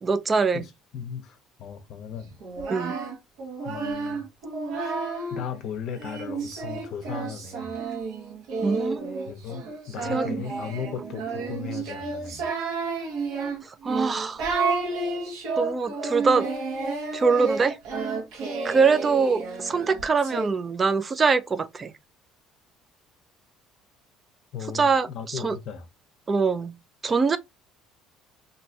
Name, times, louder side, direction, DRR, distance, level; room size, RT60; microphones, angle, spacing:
voice 1, 0.0-0.6 2.7-2.9 8.6-9.0 10.1-10.3 13.6-14.4 15.6-16.5 17.1-17.8 18.6-21.9 24.7-25.6 26.3-26.7 27.0-27.4, right 4 dB, 20° right, 0.3 m, -23 dB
voice 2, 0.5-2.4 3.6-4.2 4.8-5.0 5.3-7.8 9.3-12.5 24.5-25.9, left 7 dB, 50° left, 0.7 m, -37 dB
Singing, 2.4-5.4 6.0-20.5, right 4 dB, 65° right, 1.0 m, -31 dB
3.2 x 2.6 x 2.7 m
cardioid pair, 155°, 0 cm